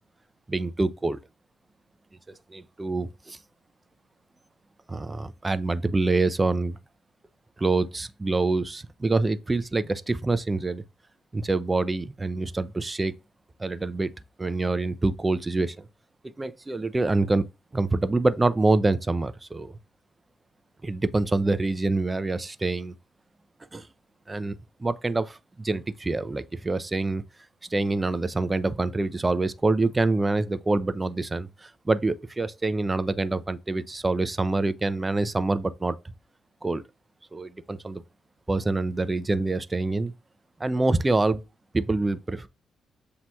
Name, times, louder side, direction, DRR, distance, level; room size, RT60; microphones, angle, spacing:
voice 1, 0.5-1.2 2.3-3.4 4.9-6.8 7.6-10.8 11.3-13.1 13.6-14.1 14.4-15.9 16.4-17.4 17.7-19.8 20.8-22.9 23.7-23.9 24.3-24.5 24.8-27.2 27.7-36.0 36.6-36.8 37.3-38.0 38.5-40.1 40.6-41.4 41.7-42.5, right 2 dB, 20° right, 0.4 m, -26 dB
7.3 x 2.8 x 2.2 m
cardioid pair, 90°, 0 cm